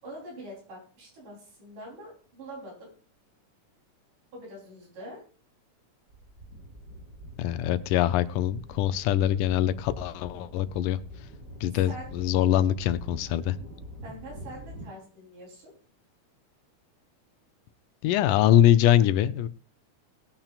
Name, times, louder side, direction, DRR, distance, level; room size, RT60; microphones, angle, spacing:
voice 1, 0.0-2.9 4.3-5.2 11.7-12.2 14.0-15.7, right 1 dB, 75° right, -2 dB, 5.3 m, -44 dB
sound 1, 6.1-14.9, equal, 30° right, 3.1 m, -45 dB
voice 2, 7.4-11.0 11.6-13.6 18.0-19.5, left 12 dB, 85° left, 13 dB, 2.1 m, -23 dB
19.5 x 8.8 x 2.4 m, 0.39 s
omnidirectional pair, 3.6 m